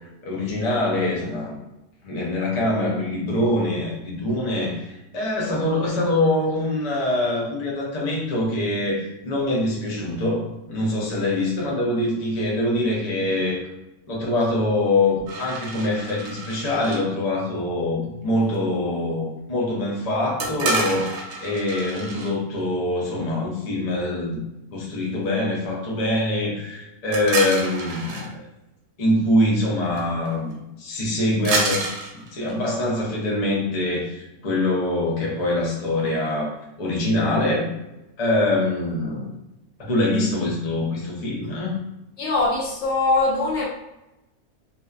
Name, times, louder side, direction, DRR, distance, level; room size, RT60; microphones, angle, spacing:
voice 1, 0.2-1.5 2.0-13.6 14.1-21.1 21.4-24.4 24.7-28.5 29.0-31.8 32.3-37.7 38.2-39.3 39.8-41.8, left 1 dB, 45° left, -3 dB, 0.6 m, -24 dB
sound 1, 15.3-17.0 20.4-22.3 27.1-28.3 29.9-30.0 30.3-30.5 31.5-32.9, right 3 dB, 70° right, 0.8 m, -29 dB
voice 2, 42.2-43.7, left 3 dB, 75° left, -3 dB, 1.0 m, -22 dB
2.6 x 2.1 x 2.3 m, 0.94 s
omnidirectional pair, 1.3 m